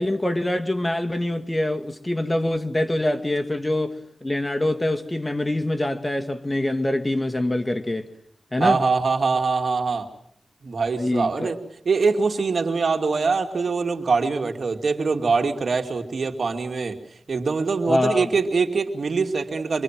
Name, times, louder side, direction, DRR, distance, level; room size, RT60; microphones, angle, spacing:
voice 1, 0.0-8.1 8.5-8.8 11.0-11.5 17.9-18.3, left 1 dB, 20° left, 2.0 m, -24 dB
voice 2, 8.6-10.1 10.6-11.6 11.8-17.0 17.3-19.8, right 4 dB, 75° right, 2.7 m, -23 dB
26.5 x 23.5 x 7.7 m
cardioid pair, 60°, 0 cm